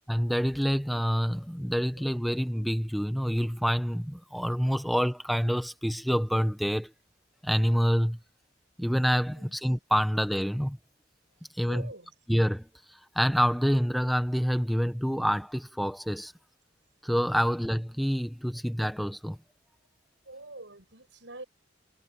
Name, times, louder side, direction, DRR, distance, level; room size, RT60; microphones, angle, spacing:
voice 1, 0.1-6.9 7.4-8.2 8.8-10.8 11.5-11.9 12.3-16.3 17.0-19.4, equal, ahead, 0.9 m, -27 dB
voice 2, 11.7-12.1 20.3-21.4, right 2 dB, 70° right, 6.9 m, -44 dB
head